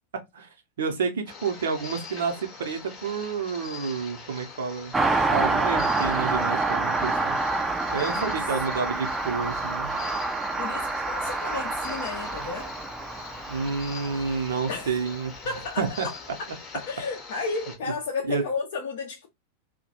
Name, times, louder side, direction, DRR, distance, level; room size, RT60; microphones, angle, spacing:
voice 1, 0.1-0.5 0.8-4.9 5.3-7.4 7.9-10.0 13.5-15.3 15.8-16.1 18.3-18.4, right 5 dB, 60° right, 0.7 m, -29 dB
sound 1, 1.3-17.8, left 5 dB, 25° left, 0.9 m, -42 dB
Car passing by, 4.9-14.9 15.1-15.2, right 3 dB, 10° right, 0.4 m, -27 dB
voice 2, 7.8-8.4 10.6-12.7 14.7-15.0 15.4-16.2 16.7-19.3, left 4 dB, 55° left, 0.5 m, -33 dB
2.2 x 2.2 x 2.8 m
figure-of-eight pair, 90°, 0 cm